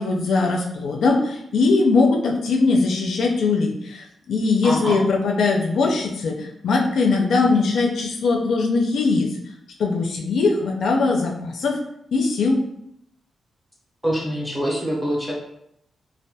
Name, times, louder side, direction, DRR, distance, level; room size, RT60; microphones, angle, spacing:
voice 1, 0.0-9.3 9.8-11.8 12.1-12.6, left 3 dB, 75° left, 0 dB, 0.3 m, -20 dB
voice 2, 4.6-5.0 14.0-15.3, equal, ahead, -4 dB, 0.6 m, -25 dB
2.2 x 2.1 x 2.6 m, 0.75 s
wide cardioid pair, 160°, 0 cm